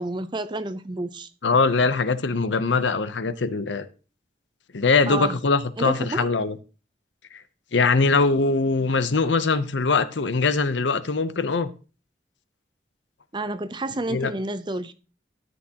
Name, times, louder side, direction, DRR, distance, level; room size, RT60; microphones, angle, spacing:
voice 1, 0.0-1.3 5.1-5.3 5.8-6.3 13.3-14.9, right 2 dB, 25° right, 0.6 m, -30 dB
voice 2, 1.4-3.9 4.7-6.6 7.3-7.4 7.7-11.7 14.1-14.3, left 4 dB, 80° left, 0.7 m, -22 dB
13.5 x 8.3 x 2.9 m
head